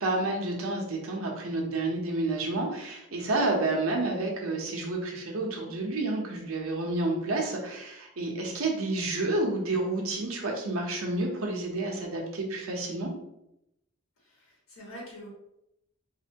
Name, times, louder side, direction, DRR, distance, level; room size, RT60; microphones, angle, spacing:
voice 1, 0.0-13.1, right 2 dB, 70° right, 1 dB, 0.8 m, -30 dB
voice 2, 14.2-15.3, equal, 65° left, -3 dB, 1.4 m, -45 dB
4.3 x 2.7 x 2.8 m, 0.84 s
head